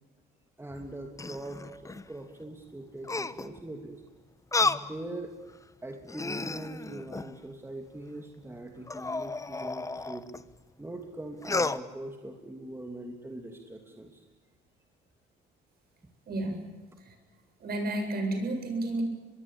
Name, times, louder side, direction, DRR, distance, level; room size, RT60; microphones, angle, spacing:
voice 1, 0.6-4.0 4.6-5.3 5.8-10.3 10.8-14.2, right 1 dB, 10° right, 3 dB, 2.8 m, -42 dB
sound 1, 0.7-2.1 3.0-3.6 4.5-4.9 5.5-5.6 6.0-7.4 8.9-10.4 11.4-11.8, left 3 dB, 15° left, 1.0 m, -32 dB
voice 2, 16.3-16.7 17.0-17.1 17.6-19.0, right 1 dB, 50° right, 5 dB, 7.6 m, -31 dB
24.0 x 21.5 x 8.8 m, 1.3 s
cardioid pair, 105°, 21 cm